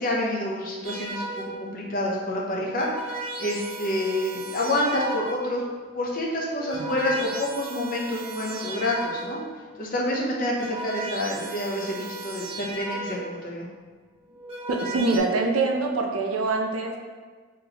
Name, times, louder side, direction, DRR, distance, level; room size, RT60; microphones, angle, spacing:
voice 1, 0.0-2.9 3.4-5.6 5.9-9.4 9.8-13.7, left 1 dB, 45° left, -3 dB, 0.7 m, -28 dB
sound 1, 0.8-1.7 2.5-5.6 6.4-9.5 10.3-13.4 14.2-15.2, right 2 dB, 30° right, 0.5 m, -36 dB
voice 2, 14.7-17.0, right 3 dB, 85° right, 2 dB, 0.5 m, -24 dB
3.9 x 3.0 x 2.9 m, 1.5 s
head